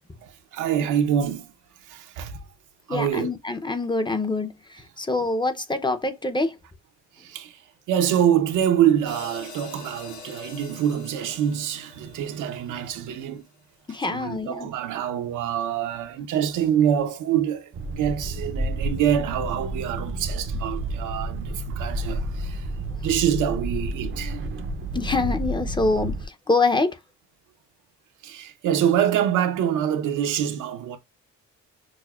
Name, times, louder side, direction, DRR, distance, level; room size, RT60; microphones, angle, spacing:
voice 1, 0.2-1.5 1.9-2.4 2.9-3.3 7.2-7.6 7.9-13.4 14.1-22.7 23.0-24.4 28.2-31.0, right 9 dB, 80° right, 0.8 m, -25 dB
voice 2, 2.9-6.6 13.9-14.7 24.9-27.0, left 3 dB, 15° left, 0.6 m, -25 dB
sound 1, 9.1-13.4, left 5 dB, 75° left, 1.1 m, -44 dB
sound 2, 17.7-26.2, right 1 dB, 45° right, 0.6 m, -30 dB
6.2 x 2.1 x 2.3 m
cardioid pair, 90°, 30 cm